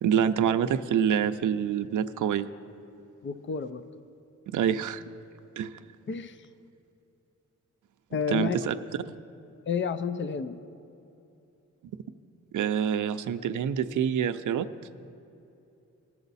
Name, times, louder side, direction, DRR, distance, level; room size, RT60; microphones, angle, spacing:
voice 1, 0.0-2.5 4.5-5.0 5.6-5.7 8.3-8.7 12.5-14.7, right 8 dB, 90° right, 10 dB, 0.5 m, -26 dB
voice 2, 3.2-3.8 6.1-6.4 8.1-8.6 9.7-10.6, left 6 dB, 40° left, 12 dB, 0.5 m, -30 dB
20.0 x 7.0 x 4.1 m, 2.8 s
wide cardioid pair, 110°, 30 cm